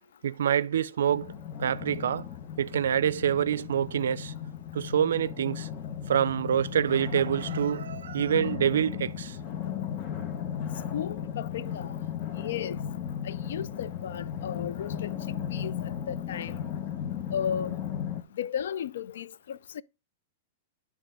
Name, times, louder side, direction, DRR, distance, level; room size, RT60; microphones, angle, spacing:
voice 1, 0.2-1.3 1.6-2.3 2.6-4.3 4.7-5.7 6.1-9.4, right 9 dB, 85° right, 0.4 m, -26 dB
sound 1, 1.1-18.2, left 9 dB, 35° left, 0.8 m, -36 dB
voice 2, 10.9-12.0 12.3-12.8 13.2-15.2 15.5-16.6 17.3-17.8 18.3-19.8, left 8 dB, 80° left, 0.3 m, -35 dB
9.1 x 3.5 x 4.6 m
hypercardioid pair, 140°, 0 cm